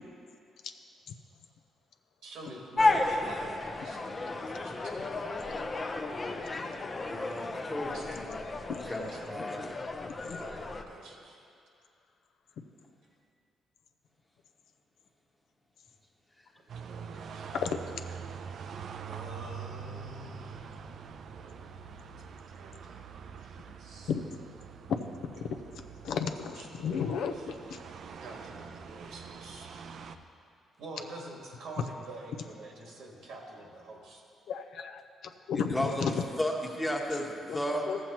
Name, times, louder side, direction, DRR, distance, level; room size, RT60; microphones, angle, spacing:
voice 1, 2.2-5.7 7.9-8.1 8.8-9.5 10.4-11.4 16.7-17.6 18.3-18.6 19.0-21.0 22.6-24.1 26.4-27.6 28.2-29.7 30.8-34.2, right 2 dB, 80° right, 0 dB, 1.5 m, -48 dB
sound 1, 2.8-10.8, left 2 dB, 30° left, 0.6 m, -33 dB
voice 2, 7.0-8.4 8.7-9.8 16.4-16.5 35.5-37.9, left 1 dB, 15° left, 0 dB, 1.2 m, -34 dB
sound 2, 16.7-30.2, right 6 dB, 65° right, 0.4 m, -45 dB
voice 3, 26.0-27.8 34.5-36.2 37.5-38.0, left 6 dB, 75° left, 6 dB, 0.5 m, -33 dB
14.0 x 7.5 x 2.9 m, 2.5 s
cardioid pair, 90°, 0 cm